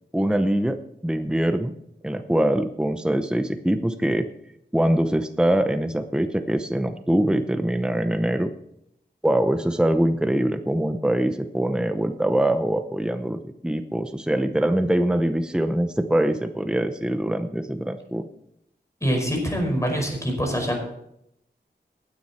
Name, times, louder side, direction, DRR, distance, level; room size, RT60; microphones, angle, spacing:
voice 1, 0.1-1.7 2.0-4.3 4.7-8.5 9.2-18.2, right 1 dB, 5° right, 8 dB, 0.8 m, -23 dB
voice 2, 19.0-20.8, equal, 15° left, 1 dB, 5.0 m, -24 dB
16.5 x 9.5 x 4.3 m, 0.77 s
wide cardioid pair, 70°, 18 cm